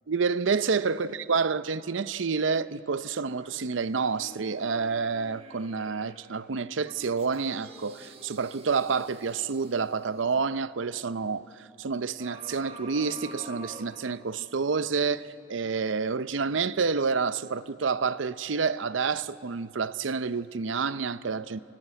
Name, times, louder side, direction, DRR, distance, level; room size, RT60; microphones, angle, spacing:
voice 1, 0.1-21.6, right 5 dB, 85° right, 0.6 m, -29 dB
sound 1, 3.1-6.3 6.8-10.5 12.2-14.5 15.0-15.1, right 2 dB, 30° right, 1.5 m, -49 dB
28.0 x 17.0 x 9.0 m
head